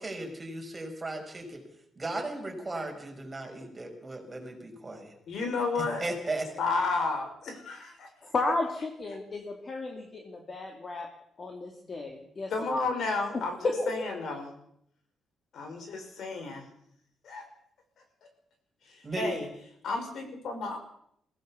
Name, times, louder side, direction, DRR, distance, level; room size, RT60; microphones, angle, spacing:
voice 1, 0.0-1.6 2.0-5.1 5.7-6.4 19.0-19.3, right 2 dB, 20° right, 2 dB, 5.1 m, -36 dB
voice 2, 5.3-6.0 6.6-8.1 12.5-14.5 15.5-16.7 17.2-17.5 18.9-19.5 19.8-20.8, left 3 dB, 65° left, 5 dB, 5.4 m, -32 dB
voice 3, 8.2-11.1 11.4-12.5 13.6-13.9, left 3 dB, 35° left, 3 dB, 2.7 m, -32 dB
23.0 x 16.5 x 7.1 m, 0.72 s
cardioid pair, 135°, 0 cm